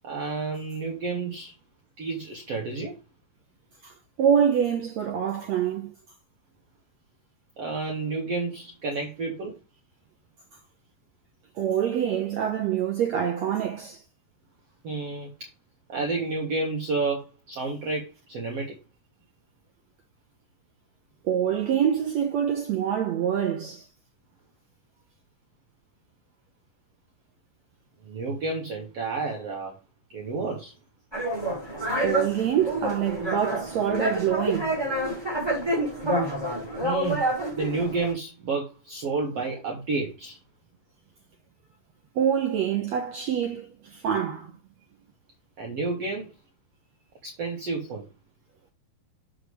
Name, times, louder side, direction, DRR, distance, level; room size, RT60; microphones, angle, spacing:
voice 1, 0.0-1.5 2.0-3.0 7.6-9.6 14.8-15.5 15.9-18.8 28.0-29.8 30.1-30.7 36.8-37.2 37.5-40.4 45.6-46.3 47.2-48.1, right 3 dB, 50° right, 2.3 m, -30 dB
voice 2, 3.8-5.9 11.6-14.0 21.2-23.9 32.0-34.8 42.1-44.5, right 8 dB, 80° right, 1.5 m, -26 dB
sound 1, 31.1-38.1, right 1 dB, 5° right, 5.0 m, -28 dB
7.5 x 6.6 x 3.4 m
omnidirectional pair, 4.3 m